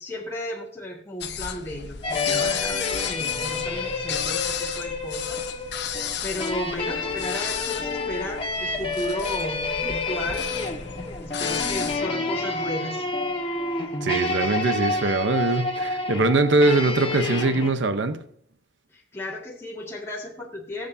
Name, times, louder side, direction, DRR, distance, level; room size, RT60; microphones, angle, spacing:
voice 1, 0.0-5.5 5.7-10.5 11.2-13.1 18.9-20.9, left 1 dB, 15° left, 1.9 m, -34 dB
sound 1, 1.2-12.0, left 8 dB, 65° left, 0.9 m, -33 dB
sound 2, 2.0-17.7, left 3 dB, 30° left, 1.5 m, -29 dB
voice 2, 14.0-18.2, right 2 dB, 75° right, 0.8 m, -22 dB
22.0 x 7.8 x 2.7 m
head